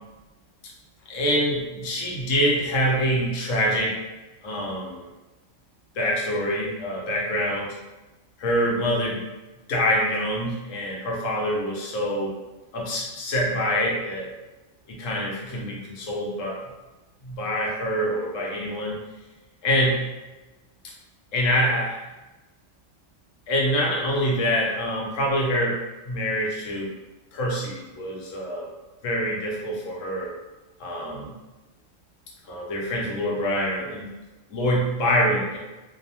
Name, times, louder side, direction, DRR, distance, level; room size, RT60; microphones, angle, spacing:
voice 1, 1.1-4.0 4.4-5.1 5.9-7.7 8.4-9.2 9.7-12.3 12.7-14.3 14.9-16.6 17.2-19.0 19.6-20.0 21.3-22.0 23.5-25.8 26.1-26.9 27.3-28.7 29.0-30.3 30.8-31.3 32.5-34.1 34.5-35.6, equal, 85° left, -2 dB, 1.0 m, -25 dB
2.6 x 2.0 x 2.8 m, 1.1 s
omnidirectional pair, 1.3 m